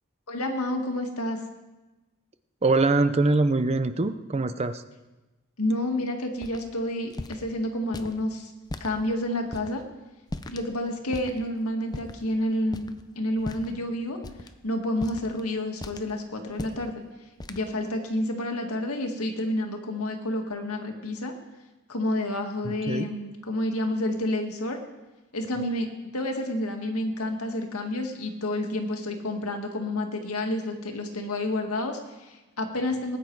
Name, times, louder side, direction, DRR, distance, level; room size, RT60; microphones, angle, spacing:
voice 1, 0.3-1.4 5.6-8.5 8.8-9.8 10.5-14.2 14.6-17.0 17.5-21.3 21.9-24.8 25.3-25.9 26.1-33.2, left 1 dB, 90° left, 3 dB, 1.9 m, -29 dB
voice 2, 2.6-4.8 22.9-23.1, right 3 dB, 30° right, 11 dB, 0.6 m, -23 dB
sound 1, 6.4-6.6 7.1-7.4 7.9-8.1 8.7-8.9 9.5-9.7 10.3-10.7 11.1-11.4 11.9-12.2 12.7-13.0 13.4-13.8 14.2-14.5 15.0-15.4 15.8-16.1 16.5-16.8 17.4-17.7, left 1 dB, 20° left, 0.6 m, -37 dB
19.5 x 9.3 x 4.7 m, 1.1 s
head